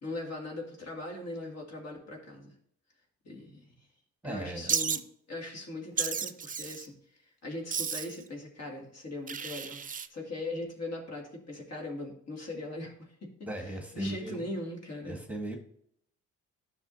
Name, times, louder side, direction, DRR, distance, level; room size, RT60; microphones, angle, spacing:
voice 1, 0.0-2.5 3.2-3.7 4.2-5.0 5.3-6.9 7.4-9.8 10.1-13.3 13.6-15.2, left 2 dB, 55° left, 0 dB, 2.4 m, -39 dB
voice 2, 4.2-4.7 13.4-14.4 15.0-15.6, right 2 dB, 5° right, 2 dB, 1.4 m, -38 dB
Wild animals, 4.7-5.0 6.0-6.9 7.7-8.2 9.3-10.1, right 6 dB, 30° right, 0.5 m, -32 dB
10.5 x 6.2 x 2.7 m, 0.67 s
cardioid pair, 90°, 30 cm